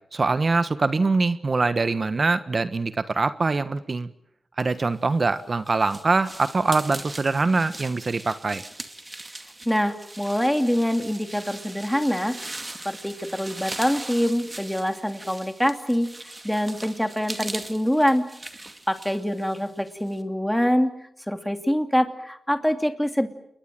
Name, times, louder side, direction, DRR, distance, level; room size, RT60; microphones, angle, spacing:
voice 1, 0.1-4.1 4.6-8.6, right 3 dB, 45° right, 12 dB, 1.3 m, -23 dB
sound 1, 5.0-20.2, right 2 dB, 20° right, 2.3 m, -40 dB
voice 2, 9.6-12.6 12.8-16.1 16.4-18.3 18.9-20.9 21.3-23.3, equal, 5° left, 7 dB, 2.7 m, -24 dB
29.0 x 22.0 x 7.6 m, 0.74 s
cardioid pair, 80°, 0 cm